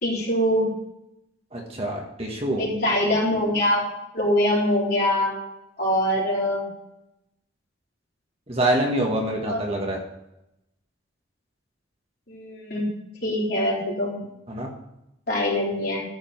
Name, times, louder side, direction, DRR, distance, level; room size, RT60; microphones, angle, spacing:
voice 1, 0.0-0.7 2.6-3.9 4.1-5.3 5.8-6.6 9.3-9.6 12.3-12.9 13.2-14.1 15.3-16.0, left 1 dB, 50° left, -5 dB, 4.2 m, -23 dB
voice 2, 1.5-2.6 8.5-10.0 14.5-14.7, right 1 dB, 30° right, 0 dB, 1.6 m, -25 dB
13.5 x 5.1 x 6.0 m, 0.85 s
head